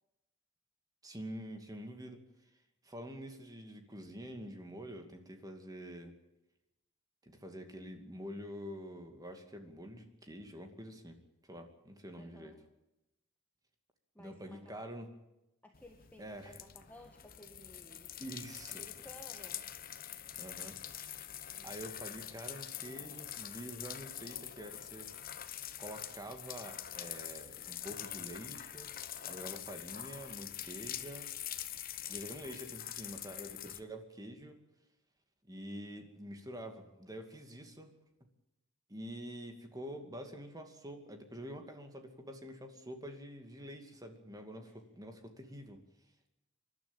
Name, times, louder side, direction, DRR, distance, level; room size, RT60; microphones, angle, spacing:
voice 1, 1.0-2.2 2.8-6.2 7.2-11.2 11.5-12.5 14.2-15.1 16.2-16.6 18.2-18.8 20.4-20.8 21.6-25.1 25.8-28.9 29.2-31.3 31.7-31.8 32.1-34.6 35.5-37.9 38.9-45.8, equal, 20° right, 5 dB, 2.5 m, -47 dB
voice 2, 12.2-12.6 14.1-14.8 15.6-18.1 18.7-19.7 21.6-21.7 44.6-44.8, left 1 dB, 10° left, 3 dB, 1.6 m, -56 dB
sound 1, 15.7-33.8, left 11 dB, 45° left, 1.1 m, -45 dB
27.0 x 12.0 x 9.0 m, 0.92 s
head